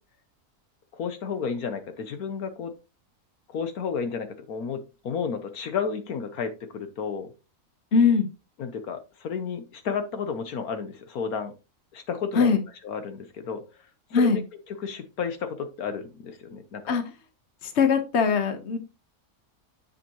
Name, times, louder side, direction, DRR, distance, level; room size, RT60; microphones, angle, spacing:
voice 1, 0.9-2.7 3.5-7.3 8.6-11.5 11.9-12.6 12.8-13.6 14.1-14.4 14.7-17.0, left 6 dB, 70° left, 9 dB, 1.4 m, -32 dB
voice 2, 7.9-8.3 12.4-12.6 14.1-14.4 16.9-17.0 17.8-18.8, left 5 dB, 50° left, 8 dB, 1.3 m, -21 dB
8.2 x 7.1 x 3.0 m, 0.29 s
omnidirectional pair, 1.6 m